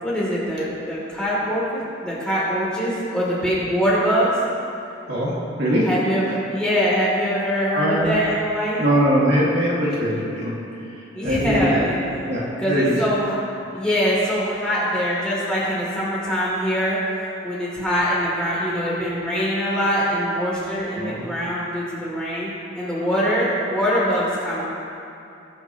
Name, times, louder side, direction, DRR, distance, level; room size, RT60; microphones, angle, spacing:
voice 1, 0.0-4.3 5.8-8.8 11.1-12.0 12.6-13.3 13.7-17.0 17.4-24.6, equal, 5° left, -8 dB, 2.9 m, -23 dB
voice 2, 5.1-5.9 7.7-8.2 8.8-10.5 10.8-11.8 12.3-12.9 21.0-21.2, equal, 55° right, -6 dB, 2.2 m, -22 dB
21.0 x 7.8 x 3.0 m, 2.7 s
head